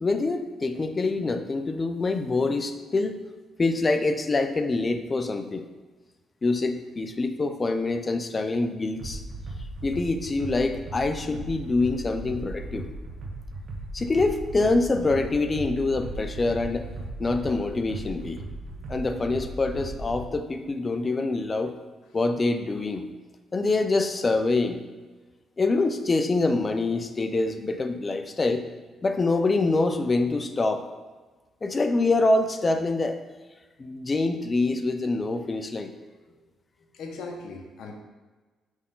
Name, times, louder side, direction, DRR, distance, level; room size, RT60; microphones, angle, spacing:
voice 1, 0.0-3.2 3.6-5.7 6.4-9.2 9.8-12.9 13.9-16.9 17.2-18.4 18.9-21.7 22.1-23.1 23.5-24.8 25.6-28.6 29.0-30.8 31.6-33.2 33.8-35.9, left 3 dB, 30° left, 8 dB, 0.6 m, -25 dB
sound 1, 9.0-20.2, right 2 dB, 60° right, 1.2 m, -37 dB
voice 2, 36.9-37.9, left 3 dB, 75° left, 2 dB, 1.2 m, -39 dB
6.3 x 5.4 x 3.8 m, 1.3 s
cardioid pair, 90°, 0 cm